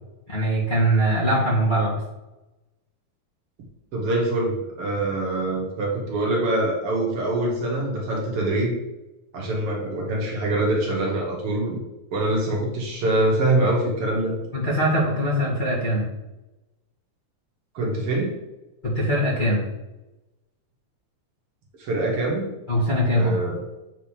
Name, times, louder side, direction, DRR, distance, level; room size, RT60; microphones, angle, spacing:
voice 1, 0.3-2.0 14.5-16.1 18.8-19.6 22.7-23.4, equal, 20° left, -7 dB, 1.6 m, -22 dB
voice 2, 3.9-8.8 9.3-11.8 12.1-14.4 17.7-18.3 21.8-22.5 23.1-23.6, right 2 dB, 50° right, -2 dB, 2.3 m, -24 dB
8.7 x 4.2 x 5.0 m, 1.0 s
omnidirectional pair, 3.6 m